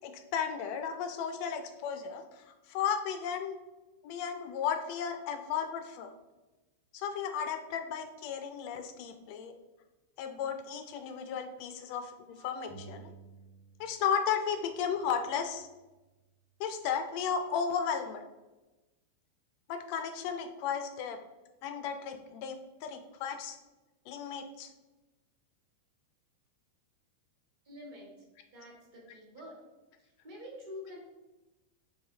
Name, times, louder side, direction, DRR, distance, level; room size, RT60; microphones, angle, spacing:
voice 1, 0.0-3.6 4.0-6.1 6.9-9.5 10.2-13.0 13.8-15.7 16.6-18.3 19.7-21.2 21.6-23.6 24.1-24.7, left 7 dB, 45° left, 7 dB, 0.3 m, -34 dB
sound 1, 12.7-14.2 14.4-16.2, right 5 dB, 90° right, 1.2 m, -55 dB
voice 2, 27.6-28.1 28.5-29.6 30.2-31.0, left 1 dB, 55° right, -3 dB, 1.0 m, -47 dB
3.9 x 2.7 x 2.7 m, 1.1 s
figure-of-eight pair, 90°, 0 cm